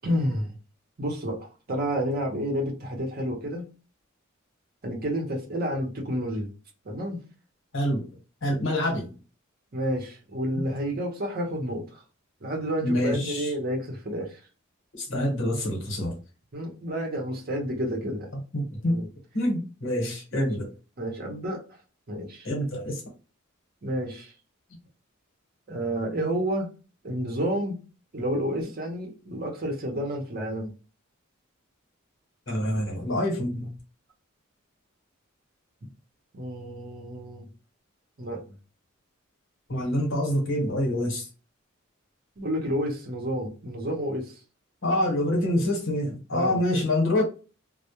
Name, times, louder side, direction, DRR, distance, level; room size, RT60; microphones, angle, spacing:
voice 1, 0.0-0.5 1.0-3.6 4.8-6.5 6.8-7.2 9.7-12.0 12.4-14.4 16.5-18.3 18.9-19.1 20.3-20.5 21.0-21.6 22.1-22.5 23.8-24.3 25.7-26.7 27.0-27.8 28.1-30.7 36.3-37.5 38.2-38.4 42.4-44.4 46.3-46.6, equal, 45° right, 0.7 m, -30 dB
voice 2, 8.4-9.1 12.8-13.5 14.9-16.1 18.5-19.0 19.3-20.7 22.4-23.0 32.5-33.8 39.7-41.3 44.8-47.2, left 1 dB, 65° left, 0.9 m, -26 dB
2.1 x 2.0 x 2.9 m
head